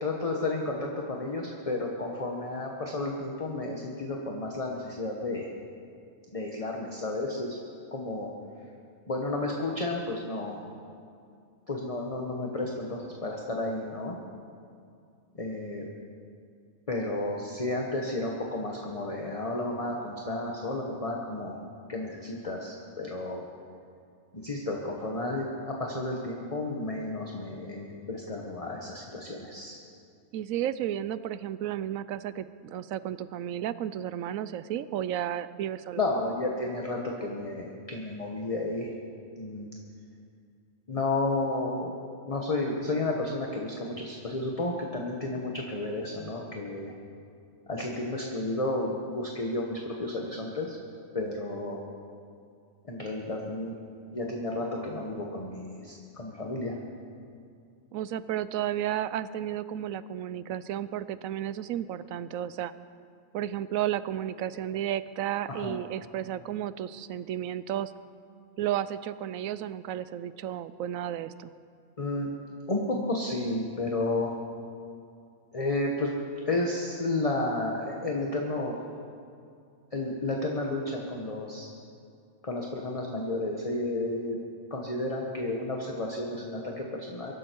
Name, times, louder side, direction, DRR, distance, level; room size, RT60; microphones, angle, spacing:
voice 1, 0.0-5.5 6.3-7.6 7.9-8.3 9.1-10.6 11.7-14.2 15.3-15.9 16.9-21.6 21.9-23.4 24.3-29.8 36.0-38.9 39.4-39.7 40.9-41.9 42.2-47.0 47.7-50.8 51.1-51.8 52.8-53.7 54.1-56.8 65.5-65.7 72.0-72.3 72.7-74.4 75.5-76.1 76.5-78.8 79.9-81.7 82.4-84.4 84.7-87.3, left 2 dB, 25° left, 0 dB, 1.2 m, -32 dB
voice 2, 30.3-36.0 57.9-62.7 63.3-67.9 68.6-71.5, right 11 dB, 85° right, 15 dB, 1.0 m, -33 dB
23.5 x 12.0 x 4.6 m, 2.3 s
omnidirectional pair, 1.4 m